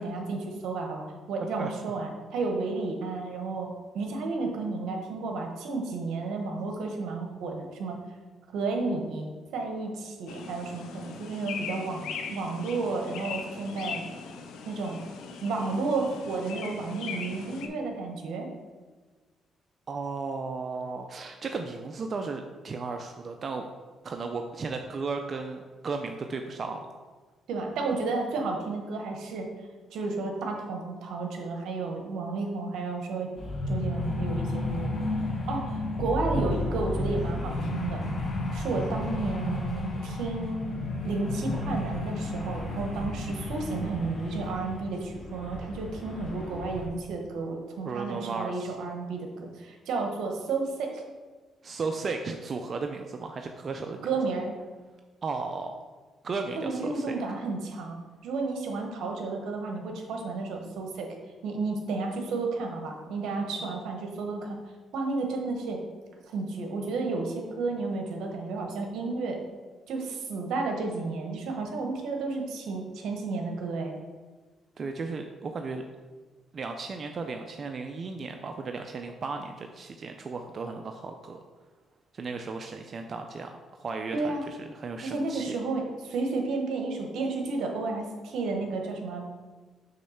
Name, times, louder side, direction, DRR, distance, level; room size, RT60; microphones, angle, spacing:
voice 1, 0.0-3.7 3.9-8.0 8.5-14.0 14.6-15.0 15.4-18.5 27.5-29.5 29.9-33.3 33.7-34.9 35.5-38.0 38.5-40.8 41.0-50.9 54.0-54.5 56.5-58.0 58.2-61.1 61.4-64.6 64.9-65.8 66.3-69.4 69.9-74.0 84.1-84.4 85.0-89.2, right 3 dB, 80° right, 2 dB, 1.1 m, -32 dB
sound 1, 10.3-17.7, left 5 dB, 90° left, 0.6 m, -40 dB
voice 2, 19.9-23.7 24.0-26.9 47.8-48.7 51.6-54.1 55.2-55.8 56.2-57.2 74.8-75.8 76.5-81.4 82.1-85.6, right 4 dB, 45° right, 5 dB, 0.4 m, -35 dB
sound 2, 33.4-46.9, left 2 dB, 55° left, 1.4 m, -32 dB
6.6 x 3.1 x 5.7 m, 1.3 s
cardioid pair, 90°, 0 cm